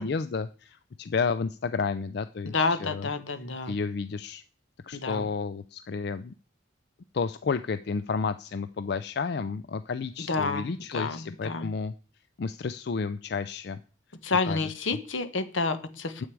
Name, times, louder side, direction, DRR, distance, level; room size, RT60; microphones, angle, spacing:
voice 1, 0.0-3.1 3.7-4.4 4.8-6.3 7.1-11.9 12.4-13.8 14.5-14.7 16.2-16.3, left 5 dB, 55° left, 12 dB, 0.4 m, -31 dB
voice 2, 2.4-3.8 4.9-5.3 10.2-10.7 10.9-11.7 14.2-16.3, left 3 dB, 80° left, 11 dB, 1.2 m, -29 dB
9.1 x 8.1 x 4.7 m, 0.38 s
head